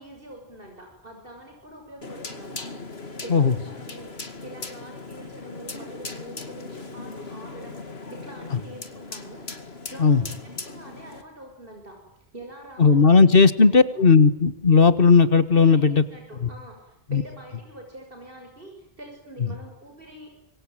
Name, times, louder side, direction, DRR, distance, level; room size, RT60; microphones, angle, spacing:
voice 1, 0.0-9.5 9.9-12.0 12.3-13.3 13.7-14.0 15.5-20.3, right 1 dB, 60° right, 2 dB, 6.9 m, -44 dB
sound 1, 2.0-11.2, left 3 dB, 80° left, 2.6 m, -38 dB
voice 2, 12.8-16.0 16.4-16.5 17.1-17.2, left 5 dB, 60° left, 13 dB, 1.8 m, -16 dB
27.5 x 23.5 x 9.2 m, 0.82 s
omnidirectional pair, 1.0 m